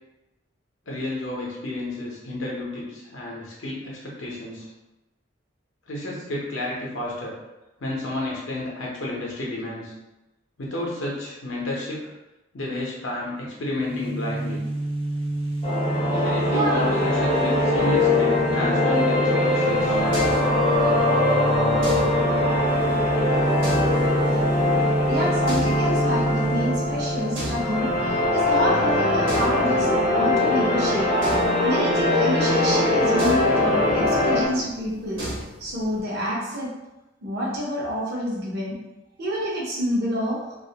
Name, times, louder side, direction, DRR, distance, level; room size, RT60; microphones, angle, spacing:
voice 1, 0.9-4.7 5.9-7.3 7.8-9.9 10.6-12.0 12.5-14.6 16.1-20.5, left 1 dB, 75° left, -4 dB, 0.6 m, -31 dB
sound 1, 13.7-28.3, right 2 dB, 30° right, 0.3 m, -27 dB
sound 2, 15.6-34.5, left 2 dB, 35° left, 0.5 m, -22 dB
voice 2, 16.5-16.8 25.1-31.4 31.6-35.2 35.6-36.7 37.2-38.8 39.2-40.4, equal, 55° right, -5 dB, 0.7 m, -28 dB
sound 3, 19.6-36.0, right 1 dB, 80° right, 1.0 m, -38 dB
2.4 x 2.1 x 2.7 m, 1.0 s
head